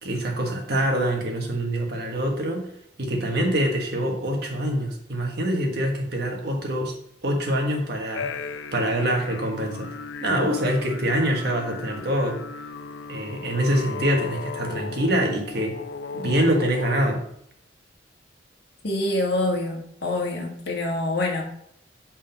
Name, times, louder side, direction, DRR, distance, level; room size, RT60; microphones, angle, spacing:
voice 1, 0.0-2.7 3.0-6.9 7.2-9.9 10.2-12.4 13.1-15.8 16.1-17.2, right 1 dB, 55° right, 2 dB, 1.4 m, -25 dB
sound 1, 8.1-17.0, left 4 dB, 80° left, 0.5 m, -36 dB
voice 2, 18.8-21.4, left 2 dB, 60° left, 0 dB, 1.6 m, -26 dB
5.3 x 5.3 x 5.2 m, 0.70 s
head